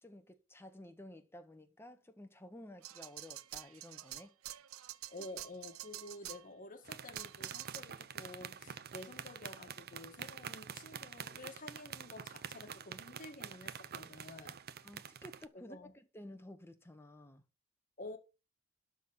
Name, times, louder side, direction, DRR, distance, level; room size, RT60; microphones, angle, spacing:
voice 1, 0.0-4.4 14.8-17.4, left 1 dB, 10° left, 1.5 m, -53 dB
sound 1, 2.8-6.5 7.1-7.8, right 13 dB, 85° right, 0.6 m, -47 dB
voice 2, 5.1-14.6 15.5-15.9 18.0-18.2, left 2 dB, 40° left, 1.9 m, -50 dB
sound 2, 6.8-15.5, right 8 dB, 50° right, 0.7 m, -47 dB
12.0 x 4.2 x 8.1 m
head